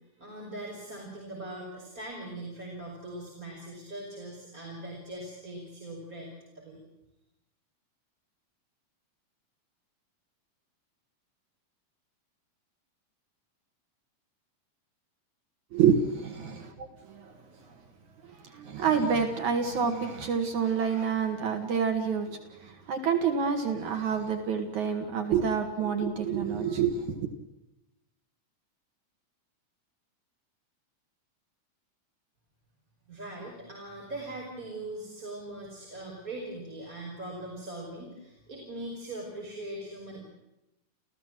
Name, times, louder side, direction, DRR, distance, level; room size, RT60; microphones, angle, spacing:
voice 1, 0.2-6.3 6.5-6.8 33.1-40.2, right 1 dB, 25° right, -2 dB, 5.6 m, -41 dB
voice 2, 15.7-17.7 18.2-27.3, right 6 dB, 70° right, 6 dB, 3.3 m, -28 dB
30.0 x 15.5 x 7.6 m, 0.93 s
omnidirectional pair, 3.6 m